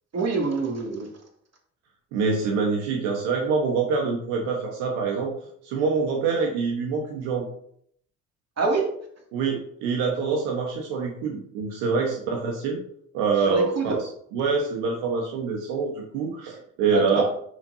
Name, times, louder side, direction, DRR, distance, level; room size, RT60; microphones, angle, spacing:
voice 1, 0.1-1.1 8.6-8.9 13.4-14.0 16.8-17.2, right 4 dB, 40° right, 1 dB, 2.5 m, -26 dB
voice 2, 2.1-5.3 5.6-7.5 9.3-12.8 13.1-13.9 14.3-17.2, right 5 dB, 75° right, 1 dB, 1.3 m, -25 dB
9.5 x 6.3 x 2.7 m, 0.66 s
hypercardioid pair, 50°, 39 cm